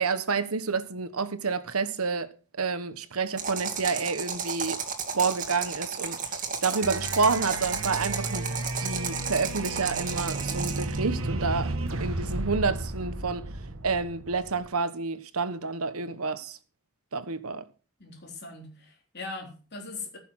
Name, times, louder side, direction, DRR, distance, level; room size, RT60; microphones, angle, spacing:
voice 1, 0.0-2.3 2.6-4.8 5.1-6.2 6.6-8.5 8.8-13.5 13.8-16.6 17.1-17.6, right 4 dB, 85° right, 1.3 m, -29 dB
sound 1, 3.4-11.0, right 5 dB, 35° right, 2.4 m, -33 dB
sound 2, 6.8-14.7, right 2 dB, 70° right, 1.4 m, -33 dB
voice 2, 18.0-20.2, left 3 dB, 50° left, 3.7 m, -40 dB
15.0 x 6.9 x 6.4 m
head